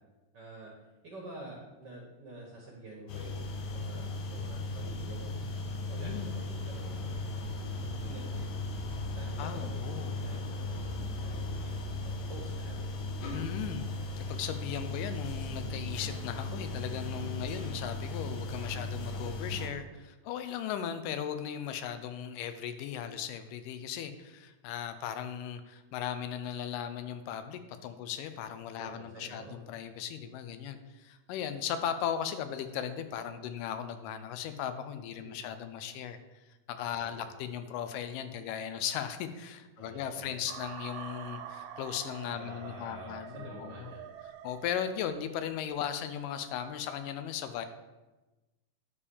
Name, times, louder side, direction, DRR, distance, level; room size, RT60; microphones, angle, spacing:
voice 1, 0.3-0.7 1.0-5.4 5.9-7.3 7.8-8.5 9.1-12.9 17.4-17.7 28.8-29.6 35.2-35.4 37.0-37.3 39.8-40.4 42.4-44.0, right 2 dB, 60° right, -2 dB, 1.2 m, -48 dB
sound 1, 3.1-19.7, left 2 dB, 70° left, 2.1 m, -37 dB
voice 2, 6.0-6.3 9.4-10.2 13.3-13.9 14.2-36.2 36.7-43.9 44.4-47.7, left 9 dB, 85° left, 10 dB, 2.2 m, -37 dB
sound 2, 40.5-45.4, right 8 dB, 85° right, 2.4 m, -46 dB
9.9 x 3.4 x 6.9 m, 1.1 s
omnidirectional pair, 3.8 m